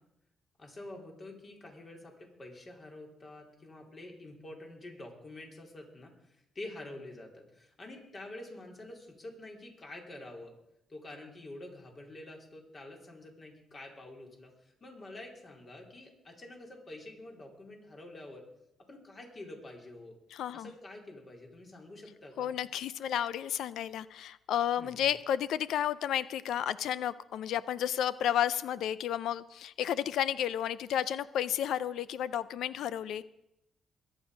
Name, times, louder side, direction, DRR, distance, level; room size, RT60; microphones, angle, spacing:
voice 1, 0.6-6.1 6.6-10.5 10.9-18.4 18.9-20.2 20.5-22.6 24.8-25.1, left 2 dB, 35° left, 1 dB, 3.8 m, -47 dB
voice 2, 20.3-20.7 22.4-33.2, left 10 dB, 80° left, 17 dB, 0.4 m, -32 dB
22.0 x 9.0 x 5.2 m, 0.83 s
cardioid pair, 90°, 0 cm